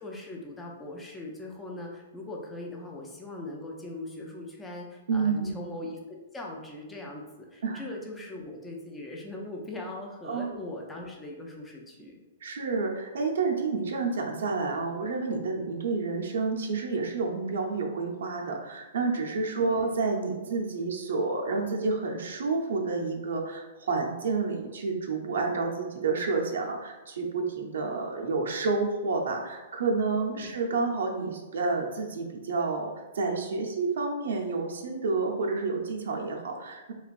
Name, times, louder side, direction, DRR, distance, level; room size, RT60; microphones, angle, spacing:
voice 1, 0.0-12.1 19.6-19.8 30.3-30.8, left 2 dB, 10° left, -1 dB, 0.5 m, -40 dB
voice 2, 5.1-5.5 7.6-7.8 10.2-10.6 12.4-36.9, right 4 dB, 80° right, 1 dB, 0.5 m, -29 dB
3.2 x 2.9 x 2.4 m, 1.1 s
hypercardioid pair, 160°, 0 cm